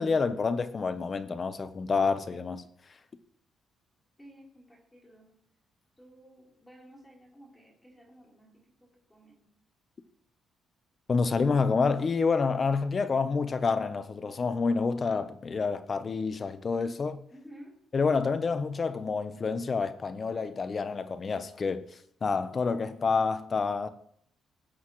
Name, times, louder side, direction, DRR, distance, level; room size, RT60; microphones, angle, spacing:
voice 1, 0.0-2.6 11.1-17.2 17.9-21.8 22.2-23.9, left 4 dB, 40° left, 1.0 m, -28 dB
voice 2, 4.2-5.3 6.0-9.5 17.3-17.8, equal, 10° left, 4.0 m, -53 dB
19.0 x 8.2 x 3.2 m
cardioid pair, 90°, 0 cm